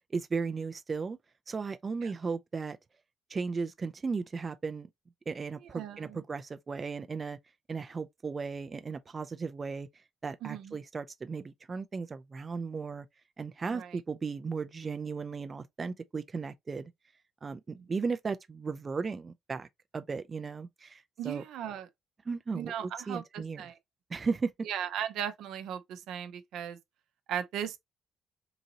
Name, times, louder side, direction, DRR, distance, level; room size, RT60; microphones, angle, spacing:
voice 1, 0.1-1.2 1.5-2.8 3.3-4.9 5.3-7.4 7.7-9.9 10.2-13.1 13.4-16.9 17.4-19.7 19.9-21.4 22.3-22.7 23.1-23.6 24.1-24.5, right 4 dB, 35° right, 0.4 m, -35 dB
voice 2, 5.6-6.2 10.4-10.8 13.6-14.0 17.7-17.9 21.2-21.9 22.5-23.8 24.6-26.8 27.3-27.8, right 9 dB, 85° right, 0.7 m, -37 dB
3.9 x 2.7 x 2.8 m
cardioid pair, 90°, 0 cm